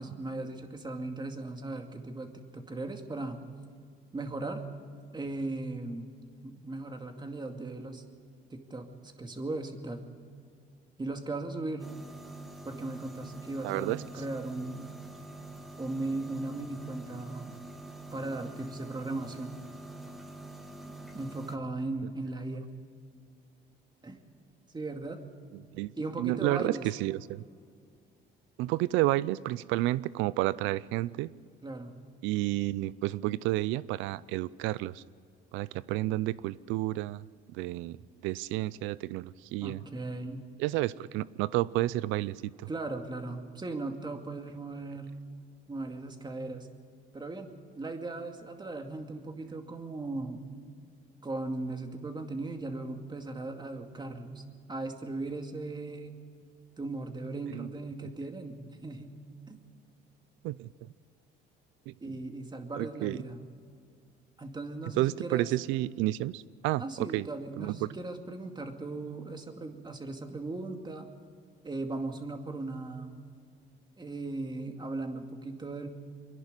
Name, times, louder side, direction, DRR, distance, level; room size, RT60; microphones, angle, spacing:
voice 1, 0.0-3.4 4.1-4.6 5.1-8.0 8.5-8.9 9.2-10.1 11.0-11.9 12.6-14.9 15.8-17.6 17.8-19.6 21.1-22.7 24.0-24.2 24.7-25.2 26.0-26.9 31.6-31.9 39.6-40.5 42.7-45.2 45.7-46.7 47.1-50.5 51.2-54.4 54.7-56.2 56.8-59.2 59.5-59.6 62.0-63.4 64.4-65.5 66.8-71.1 71.6-73.2 74.0-75.9, right 2 dB, 25° right, 4 dB, 2.3 m, -38 dB
sound 1, 11.8-21.6, right 2 dB, ahead, 2.0 m, -46 dB
voice 2, 13.6-14.0 25.5-25.9 26.2-27.4 28.6-31.3 32.2-35.0 35.5-37.2 37.5-38.0 38.2-39.8 40.6-42.7 57.5-57.7 58.0-58.1 60.4-60.7 61.9-62.1 62.8-63.2 65.0-67.3 67.6-67.9, right 17 dB, 85° right, 20 dB, 0.5 m, -31 dB
24.5 x 11.0 x 9.7 m, 2.2 s
cardioid pair, 85°, 19 cm